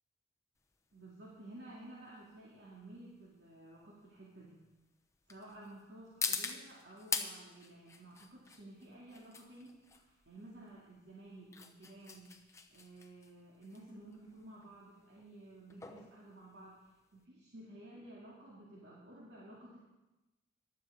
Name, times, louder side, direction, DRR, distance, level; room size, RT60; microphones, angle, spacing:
sound 1, 0.6-17.2, left 5 dB, 15° left, 0.9 m, -44 dB
voice 1, 0.9-4.7 5.3-12.3 12.7-16.8 17.1-19.8, right 1 dB, 75° right, -5 dB, 2.6 m, -53 dB
15.0 x 11.5 x 5.1 m, 1.0 s
head